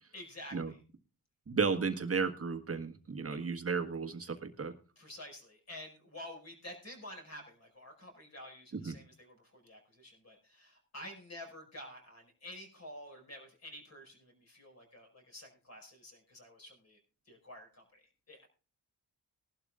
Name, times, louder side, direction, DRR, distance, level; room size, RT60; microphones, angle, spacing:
voice 1, 0.1-0.8 3.3-3.4 5.0-17.0 17.3-18.5, left 1 dB, 35° left, 2 dB, 5.4 m, -50 dB
voice 2, 1.5-4.7 8.7-8.9, right 5 dB, 35° right, 6 dB, 1.5 m, -34 dB
20.5 x 12.0 x 2.4 m, 0.35 s
cardioid pair, 110°, 42 cm